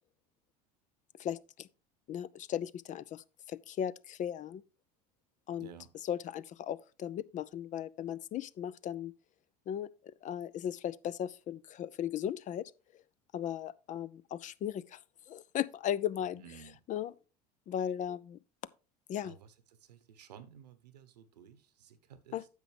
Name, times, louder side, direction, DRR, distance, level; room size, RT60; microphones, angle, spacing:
voice 1, 1.2-1.7 2.1-4.6 5.5-5.7 6.1-9.1 9.7-13.0 13.3-15.0 15.3-16.4 16.9-17.1 17.7-18.4 19.1-19.3 22.3-22.4, left 10 dB, 40° left, 0.5 m, -37 dB
voice 2, 5.6-5.9 16.2-16.8 19.2-22.5, right 8 dB, 80° right, 1.1 m, -54 dB
9.9 x 6.9 x 3.3 m
hypercardioid pair, 75°, 21 cm